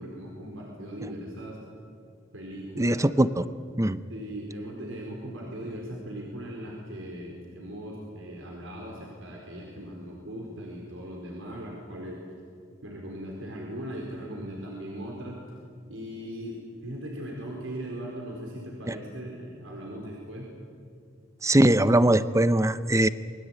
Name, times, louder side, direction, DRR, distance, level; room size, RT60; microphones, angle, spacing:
voice 1, 0.0-1.6 2.3-3.0 4.1-12.2 12.8-15.4 15.9-20.5, equal, 85° right, -1 dB, 4.5 m, -39 dB
voice 2, 2.8-3.4 3.8-4.0 18.9-19.0 21.4-23.1, right 1 dB, 15° right, 14 dB, 0.7 m, -21 dB
27.0 x 22.0 x 9.0 m, 2.3 s
head